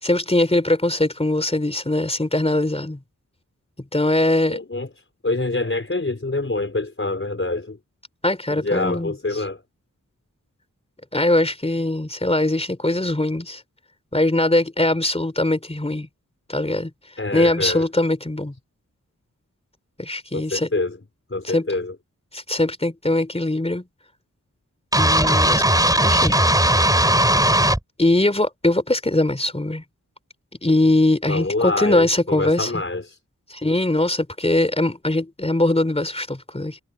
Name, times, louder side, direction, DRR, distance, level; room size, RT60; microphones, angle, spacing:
voice 1, 0.0-3.0 3.9-4.6 8.2-9.1 11.1-13.6 14.1-16.1 16.5-16.9 17.3-18.5 20.0-20.7 21.4-21.7 22.3-23.8 25.0-25.6 25.9-26.4 26.8-26.9 28.0-29.8 30.6-32.7 33.5-36.8, left 1 dB, 20° left, 3.4 m, -21 dB
voice 2, 4.5-4.9 5.2-7.8 8.5-9.6 17.2-17.9 20.3-21.0 21.3-21.9 31.3-33.2, left 2 dB, 40° left, 4.6 m, -26 dB
sound 1, 24.9-27.8, right 1 dB, 10° right, 3.3 m, -17 dB
wide cardioid pair, 90°, 32 cm